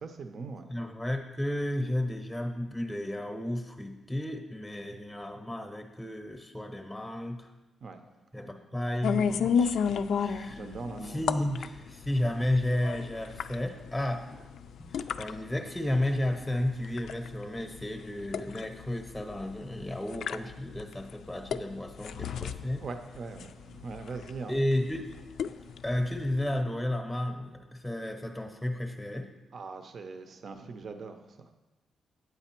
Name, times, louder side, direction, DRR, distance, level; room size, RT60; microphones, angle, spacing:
voice 1, 0.0-0.7 7.8-8.0 8.3-8.6 10.4-11.2 22.8-24.5 29.5-31.5, right 4 dB, 55° right, 7 dB, 0.6 m, -41 dB
voice 2, 0.7-7.5 8.3-9.8 10.2-10.7 11.0-14.4 14.8-22.9 24.5-25.1 25.8-29.3, left 1 dB, 5° left, 4 dB, 0.8 m, -32 dB
sound 1, 9.0-26.6, left 7 dB, 75° left, 0.3 m, -34 dB
8.8 x 8.1 x 4.4 m, 1.1 s
cardioid pair, 115°, 0 cm